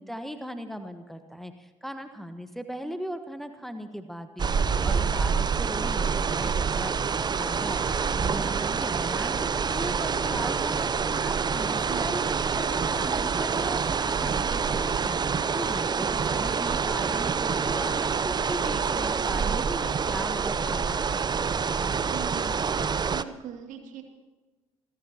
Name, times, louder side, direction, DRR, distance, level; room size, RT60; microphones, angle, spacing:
voice 1, 0.0-21.3, equal, ahead, 8 dB, 1.4 m, -38 dB
sound 1, 4.4-23.2, right 6 dB, 25° right, 0.7 m, -27 dB
voice 2, 22.1-22.5 23.1-24.0, right 9 dB, 55° right, 4 dB, 2.6 m, -40 dB
28.5 x 15.0 x 3.0 m, 1.3 s
figure-of-eight pair, 45°, 16 cm